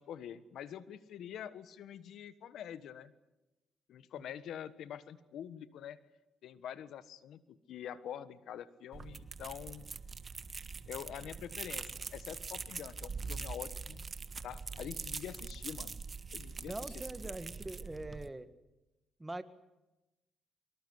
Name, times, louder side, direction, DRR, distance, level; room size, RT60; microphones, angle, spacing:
voice 1, 0.0-3.1 3.9-6.0 6.4-9.9 10.9-14.0 14.4-16.0 16.3-16.7 17.2-17.4, left 9 dB, 75° left, 14 dB, 1.4 m, -45 dB
sound 1, 8.9-18.3, right 4 dB, 35° right, 1.5 m, -43 dB
voice 2, 16.7-18.5 19.2-19.4, right 2 dB, 15° right, 11 dB, 1.8 m, -43 dB
24.5 x 22.0 x 8.0 m, 1.0 s
cardioid pair, 90°, 0 cm